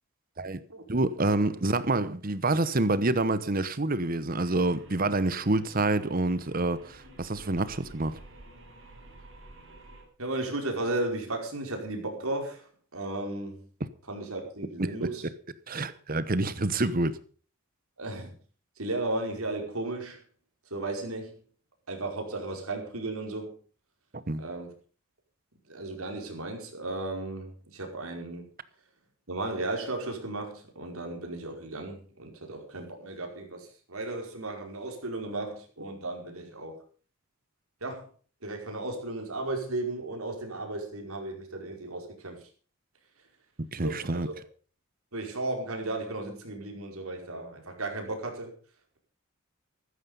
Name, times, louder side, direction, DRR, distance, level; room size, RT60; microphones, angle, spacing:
voice 1, 0.9-8.2 13.8-13.9 14.8-15.0 15.7-17.2 24.3-24.4 43.6-44.3, right 2 dB, 40° right, 1.0 m, -27 dB
sound 1, 4.3-10.0, right 1 dB, 60° right, 6.8 m, -51 dB
voice 2, 10.2-13.6 14.1-15.2 16.8-16.9 18.0-18.3 18.8-20.2 20.7-21.4 21.9-23.6 24.4-24.7 25.7-28.5 29.3-36.8 37.8-38.1 38.4-42.4 43.8-44.2 45.1-48.5, right 2 dB, 90° right, 5.0 m, -35 dB
15.0 x 13.0 x 5.5 m
head